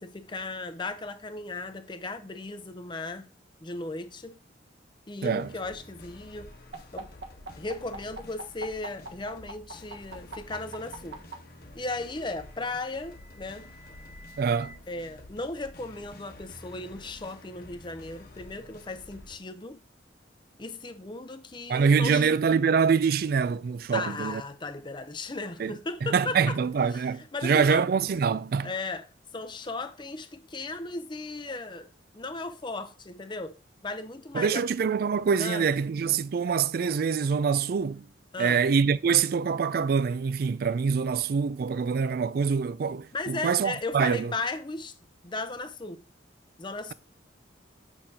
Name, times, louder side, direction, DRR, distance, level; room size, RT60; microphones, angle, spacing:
voice 1, 0.0-3.3 3.6-4.4 5.1-6.5 6.9-7.1 7.6-11.2 11.7-13.7 14.9-19.8 20.6-22.3 23.9-26.6 27.3-27.8 28.6-29.0 29.3-31.9 32.1-33.6 33.8-34.6 35.4-35.7 38.3-38.6 43.1-44.9 45.2-46.0 46.6-46.9, left 3 dB, 25° left, 0.6 m, -36 dB
sound 1, 5.4-19.4, left 2 dB, 55° left, 1.1 m, -49 dB
sound 2, 6.7-11.3 12.5-14.7, right 3 dB, 80° right, 1.3 m, -43 dB
voice 2, 14.4-14.8 21.7-24.4 25.6-28.7 34.3-38.1 38.4-44.3, right 6 dB, 50° right, 0.3 m, -25 dB
8.6 x 5.9 x 2.8 m
head